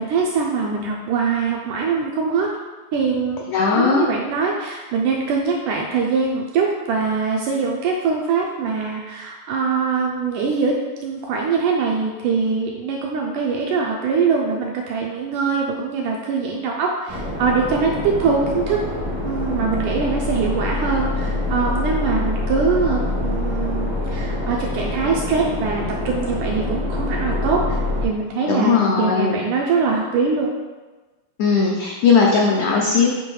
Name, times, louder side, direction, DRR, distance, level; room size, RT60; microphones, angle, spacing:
voice 1, 0.0-2.5 2.9-3.5 3.7-10.7 11.0-18.8 19.2-30.5, right 5 dB, 80° right, -1 dB, 1.8 m, -22 dB
voice 2, 3.5-4.1 28.5-29.4 31.4-33.1, left 5 dB, 85° left, -1 dB, 1.6 m, -18 dB
sound 1, 17.1-28.0, left 2 dB, 30° right, 0.4 m, -25 dB
8.6 x 3.0 x 4.7 m, 1.2 s
omnidirectional pair, 4.1 m